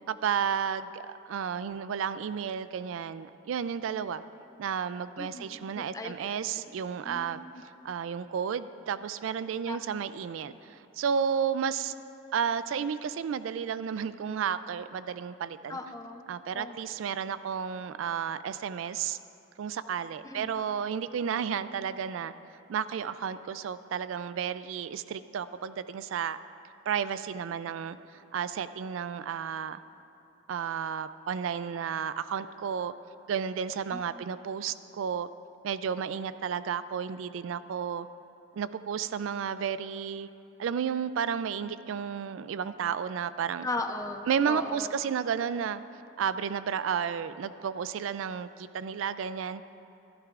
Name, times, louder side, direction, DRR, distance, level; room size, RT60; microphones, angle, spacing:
voice 1, 0.1-4.2 4.6-7.4 7.8-11.9 12.3-15.8 16.3-19.2 19.6-22.3 22.7-26.4 26.9-29.8 30.5-32.9 33.3-35.3 35.6-38.1 38.5-40.3 40.6-43.7 44.3-45.8 46.2-49.6, right 7 dB, 75° right, 14 dB, 0.3 m, -32 dB
voice 2, 5.2-6.7 7.0-7.6 9.7-9.8 15.7-16.2 16.5-16.8 20.2-20.6 33.9-34.2 43.6-44.9, left 2 dB, 15° left, 5 dB, 0.5 m, -38 dB
14.5 x 12.0 x 2.5 m, 3.0 s
head